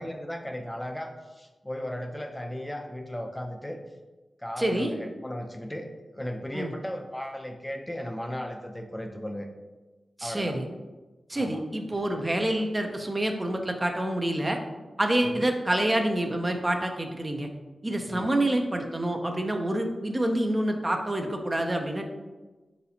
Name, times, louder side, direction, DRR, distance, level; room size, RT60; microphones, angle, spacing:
voice 1, 0.0-3.8 4.4-5.9 6.1-9.5 10.2-10.6 11.3-11.6 12.0-12.2 15.2-15.5 18.1-18.3, equal, 15° left, 3 dB, 0.5 m, -36 dB
voice 2, 4.6-4.9 6.5-6.7 10.2-10.6 11.3-14.6 15.0-17.5 17.8-22.0, right 1 dB, 30° right, 3 dB, 0.5 m, -27 dB
4.1 x 4.0 x 2.7 m, 1.2 s
cardioid pair, 40°, 0 cm